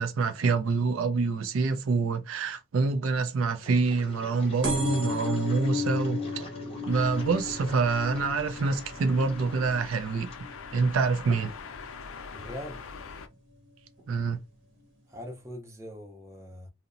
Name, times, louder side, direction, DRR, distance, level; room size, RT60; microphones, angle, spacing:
voice 1, 0.0-6.5 6.9-10.3 10.7-11.5 14.1-14.4, right 4 dB, 80° right, 0.4 m, -26 dB
Engine, 3.6-11.4, equal, 30° left, 0.7 m, -48 dB
sound 1, 4.6-11.9 12.4-12.8 13.7-13.8 14.0-14.1 14.3-14.4, left 3 dB, 60° right, 0.9 m, -35 dB
sound 2, 6.9-13.3, left 5 dB, 80° left, 0.4 m, -44 dB
voice 2, 12.3-12.8 15.1-16.7, left 1 dB, 15° right, 0.5 m, -42 dB
2.8 x 2.0 x 2.4 m
head